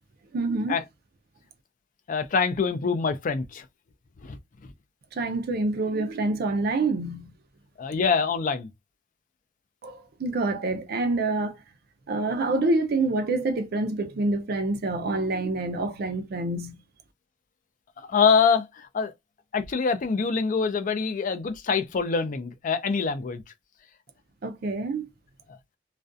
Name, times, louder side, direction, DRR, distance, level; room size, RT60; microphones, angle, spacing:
voice 1, 0.3-0.8 5.1-7.3 9.8-11.6 12.1-16.8 24.4-25.1, right 2 dB, 55° right, 0.4 m, -27 dB
voice 2, 2.1-3.6 4.2-4.4 7.8-8.7 18.1-19.1 19.5-23.4, left 5 dB, 45° left, 0.4 m, -25 dB
2.4 x 2.2 x 2.5 m
head